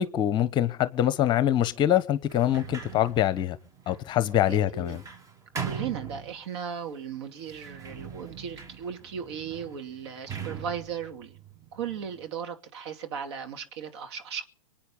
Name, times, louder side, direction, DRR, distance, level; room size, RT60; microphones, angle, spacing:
voice 1, 0.0-3.6 3.9-5.0, left 11 dB, 25° left, 1.1 m, -24 dB
Sliding door, 2.2-6.8 7.4-12.2, right 7 dB, 20° right, 1.8 m, -41 dB
voice 2, 4.5-5.0 5.6-11.4 11.7-14.4, right 7 dB, 55° right, 2.7 m, -36 dB
25.0 x 9.2 x 5.5 m
hypercardioid pair, 115°, 17 cm